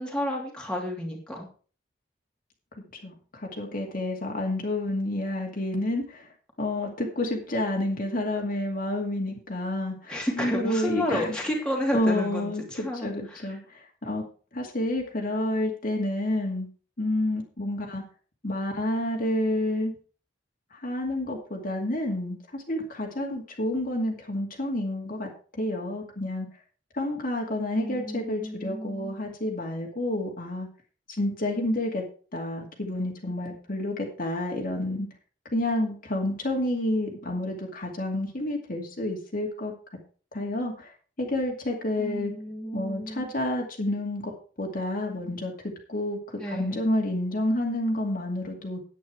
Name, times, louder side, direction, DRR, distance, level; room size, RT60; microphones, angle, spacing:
voice 1, 0.0-1.5 10.1-13.4 27.7-29.1 42.0-43.3 46.4-46.8, equal, 5° left, -2 dB, 2.9 m, -31 dB
voice 2, 3.0-6.3 6.6-11.4 11.9-14.2 14.5-16.7 17.0-18.0 18.4-19.9 20.7-26.5 26.9-30.7 31.1-32.0 32.3-35.1 35.5-39.7 40.3-40.9 41.2-42.3 42.7-44.3 44.6-45.5 45.9-46.2 46.5-48.8, left 1 dB, 45° left, 1 dB, 2.3 m, -29 dB
9.4 x 9.4 x 4.7 m, 0.39 s
head